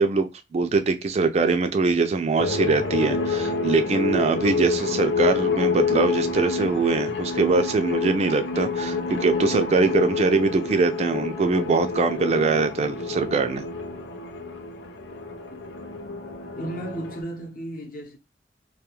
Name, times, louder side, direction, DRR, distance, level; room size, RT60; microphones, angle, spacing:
voice 1, 0.0-13.6, right 4 dB, 40° right, 0.3 m, -23 dB
sound 1, 2.4-17.2, left 4 dB, 90° left, 0.5 m, -28 dB
voice 2, 16.5-18.2, right 1 dB, 55° left, 0.8 m, -34 dB
2.4 x 2.3 x 2.8 m
head